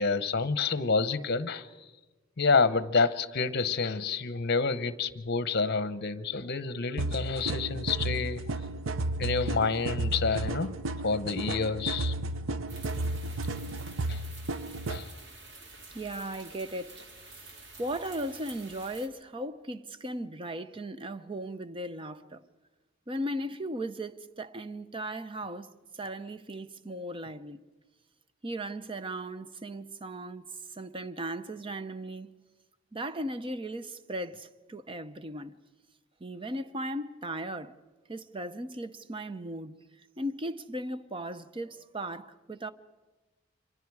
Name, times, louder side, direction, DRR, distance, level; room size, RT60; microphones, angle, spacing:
voice 1, 0.0-1.9 2.4-8.6 9.2-10.7 11.0-12.1 14.1-14.2 14.9-15.1, left 4 dB, 55° left, 0.9 m, -28 dB
sound 1, 7.0-15.0, right 2 dB, 85° right, 0.7 m, -33 dB
sound 2, 12.7-19.1, right 3 dB, 60° right, 2.6 m, -49 dB
voice 2, 15.9-17.1 17.4-22.4 23.1-27.6 28.4-32.3 32.9-35.6 36.2-37.8 38.1-42.7, right 1 dB, 25° right, 0.7 m, -37 dB
29.5 x 25.0 x 4.8 m
head